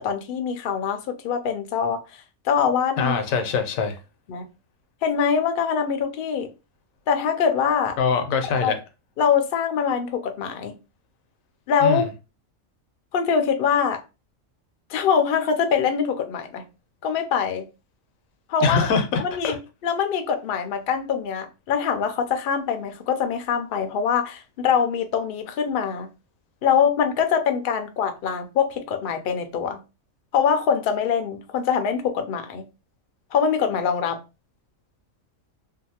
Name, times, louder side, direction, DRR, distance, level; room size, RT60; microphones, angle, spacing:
voice 1, 0.0-3.2 4.3-4.5 5.0-6.5 7.1-8.0 8.6-8.8 9.2-10.7 11.7-12.0 13.1-14.0 14.9-16.6 17.0-17.6 18.5-18.9 19.2-19.6 19.8-26.1 26.6-29.8 30.3-32.6 33.3-34.2, left 7 dB, 65° left, 0.5 m, -23 dB
voice 2, 3.0-4.0 8.0-8.7 11.8-12.0 18.6-19.6, left 5 dB, 85° left, 1.0 m, -23 dB
2.7 x 2.3 x 2.7 m
omnidirectional pair, 1.4 m